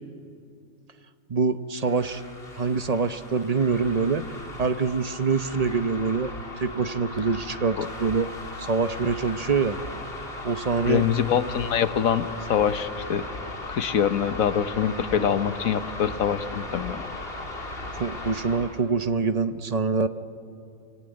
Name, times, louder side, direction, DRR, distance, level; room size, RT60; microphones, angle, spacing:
voice 1, 1.3-2.2 2.6-4.2 4.6-8.3 8.6-9.8 10.4-11.0 18.0-20.1, right 4 dB, 35° right, 11 dB, 0.7 m, -25 dB
sound 1, 1.8-18.8, left 2 dB, 40° left, 3.2 m, -37 dB
voice 2, 10.9-13.3 13.7-17.1, left 8 dB, 75° left, 11 dB, 1.4 m, -24 dB
25.5 x 24.5 x 9.1 m, 2.5 s
omnidirectional pair, 1.5 m